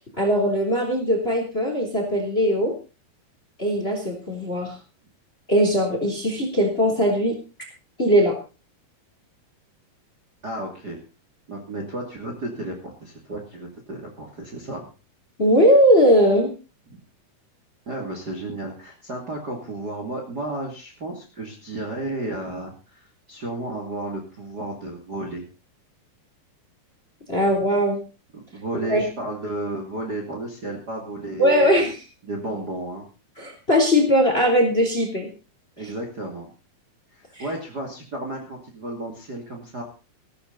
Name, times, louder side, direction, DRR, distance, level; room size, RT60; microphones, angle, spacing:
voice 1, 0.2-2.7 3.6-4.7 5.5-7.4 8.0-8.4 15.4-16.5 27.3-28.0 28.9-29.0 31.4-32.0 33.4-35.3 37.4-37.5, equal, 15° left, 4 dB, 2.9 m, -19 dB
voice 2, 10.4-11.0 11.5-14.8 16.9-17.0 17.9-25.4 27.4-27.5 28.3-31.8 32.2-33.0 35.8-36.5 37.1-39.8, right 2 dB, 30° right, 1 dB, 2.6 m, -33 dB
16.0 x 13.5 x 4.0 m, 0.32 s
omnidirectional pair, 4.6 m